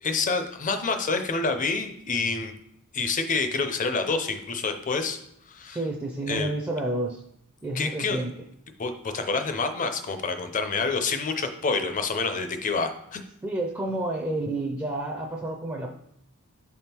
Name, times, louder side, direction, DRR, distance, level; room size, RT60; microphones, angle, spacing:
voice 1, 0.0-2.5 2.9-5.2 5.5-5.8 6.3-6.5 7.7-8.2 8.8-13.2, left 4 dB, 35° left, 7 dB, 0.6 m, -27 dB
voice 2, 5.7-7.2 7.6-8.3 13.4-16.0, right 2 dB, 10° right, 0 dB, 0.5 m, -30 dB
6.1 x 3.6 x 4.4 m, 0.74 s
head